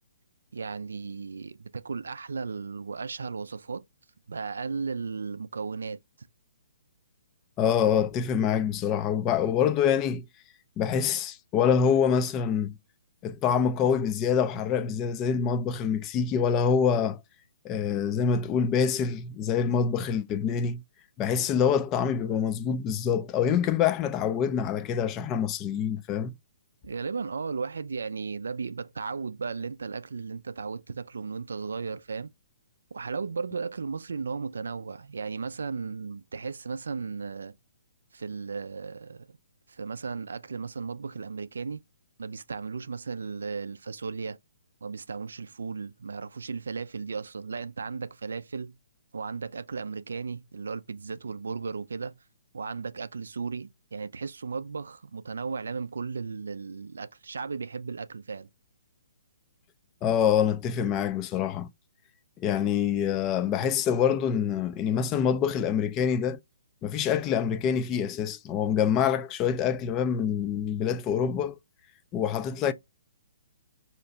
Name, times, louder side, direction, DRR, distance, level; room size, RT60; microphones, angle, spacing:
voice 1, 0.5-3.8 4.3-6.0 26.8-32.3 32.9-37.5 38.1-39.4 39.7-41.8 42.2-44.4 44.8-48.7 49.1-52.2 52.5-58.5, right 5 dB, 70° right, 0.3 m, -35 dB
voice 2, 7.6-10.2 10.8-12.8 13.2-17.2 17.6-20.8 21.2-26.3 60.0-61.7 62.4-66.4 66.8-71.5 72.1-72.7, left 7 dB, 25° left, 0.4 m, -26 dB
2.9 x 2.3 x 4.0 m
figure-of-eight pair, 130°, 0 cm